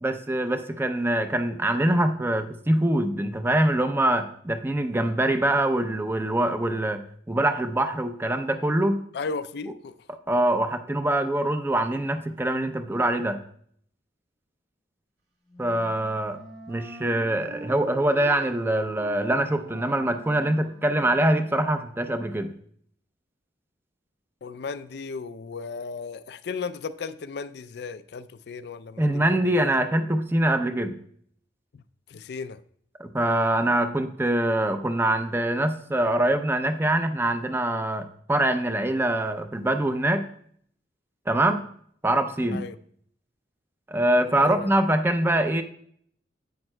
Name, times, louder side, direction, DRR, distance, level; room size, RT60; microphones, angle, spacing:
voice 1, 0.0-7.0 7.3-9.0 10.3-13.4 15.6-16.4 16.7-22.5 29.0-31.0 33.0-40.2 41.3-41.7 42.0-42.6 43.9-45.6, right 1 dB, 15° right, 0.5 m, -24 dB
voice 2, 9.1-9.9 24.4-29.5 31.7-31.8 32.1-32.6 42.5-42.8 44.4-44.7, left 4 dB, 65° left, 0.4 m, -35 dB
Wind instrument woodwind instrument, 15.5-21.5, right 1 dB, 70° right, 2.1 m, -44 dB
10.5 x 8.6 x 2.2 m
head